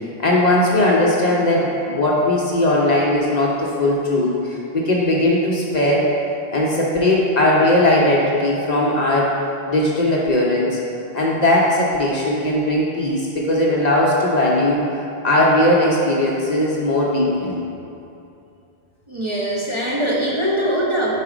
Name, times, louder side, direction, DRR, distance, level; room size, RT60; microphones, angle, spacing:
voice 1, 0.2-6.1 6.5-9.4 9.7-10.8 11.1-14.8 15.2-17.6, left 1 dB, 45° left, -4 dB, 0.6 m, -18 dB
voice 2, 19.1-21.2, right 1 dB, 35° right, -6 dB, 0.6 m, -22 dB
4.9 x 4.1 x 4.9 m, 2.7 s
omnidirectional pair, 1.1 m